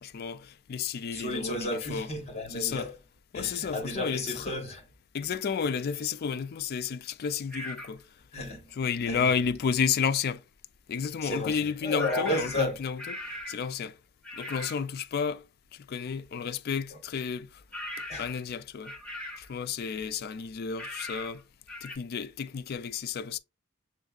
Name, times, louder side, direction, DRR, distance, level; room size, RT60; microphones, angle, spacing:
voice 1, 0.0-2.1 2.5-2.9 3.3-4.5 5.1-8.0 8.8-10.4 10.9-14.0 14.3-15.4 15.7-17.6 18.2-18.9 19.4-21.4 21.8-23.4, left 6 dB, 45° left, 0.3 m, -32 dB
voice 2, 1.1-3.0 3.3-4.9 8.3-8.7 9.1-9.3 11.2-12.8 18.1-18.3 20.0-20.1, left 1 dB, 30° left, 1.2 m, -33 dB
sound 1, 7.5-7.9 12.0-13.7 14.2-14.8 17.7-18.4 18.8-19.5 20.8-21.4 21.7-22.0, left 1 dB, 5° left, 1.1 m, -39 dB
7.0 x 2.6 x 2.3 m
head